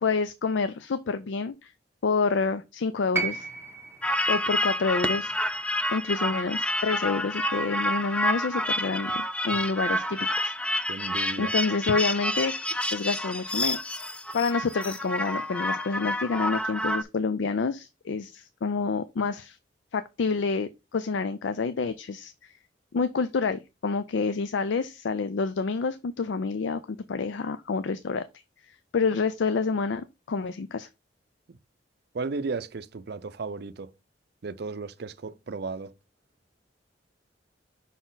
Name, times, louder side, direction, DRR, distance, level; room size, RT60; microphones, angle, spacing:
voice 1, 0.0-1.7 2.0-3.5 4.3-5.3 5.9-10.5 11.4-12.5 12.9-13.8 14.3-19.6 19.9-22.3 22.9-28.2 28.9-30.9, left 4 dB, 80° left, 0.4 m, -28 dB
sound 1, 3.1-7.3 8.5-8.6, right 4 dB, 15° right, 0.7 m, -36 dB
sound 2, 4.0-17.0, left 1 dB, 5° left, 0.4 m, -29 dB
voice 2, 10.9-11.5 32.1-33.9 34.4-35.9, right 4 dB, 60° right, 0.5 m, -34 dB
5.8 x 4.2 x 3.9 m
head